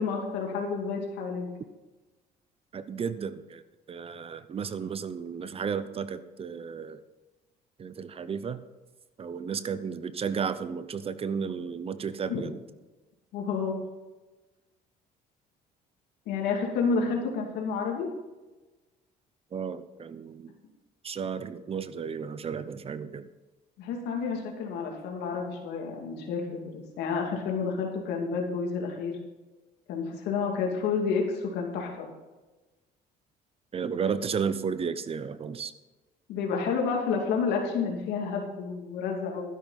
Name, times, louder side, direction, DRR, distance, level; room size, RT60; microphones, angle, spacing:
voice 1, 0.0-1.5 12.3-12.4 13.3-13.8 16.3-18.1 23.8-26.7 27.0-29.1 29.9-32.1 36.3-39.5, left 5 dB, 85° left, 1 dB, 2.6 m, -30 dB
voice 2, 2.7-3.6 3.9-7.0 7.8-8.6 9.2-12.5 19.5-20.5 21.0-23.3 33.7-35.7, right 6 dB, 35° right, 14 dB, 0.7 m, -33 dB
12.5 x 10.5 x 4.1 m, 1.2 s
cardioid pair, 110°, 17 cm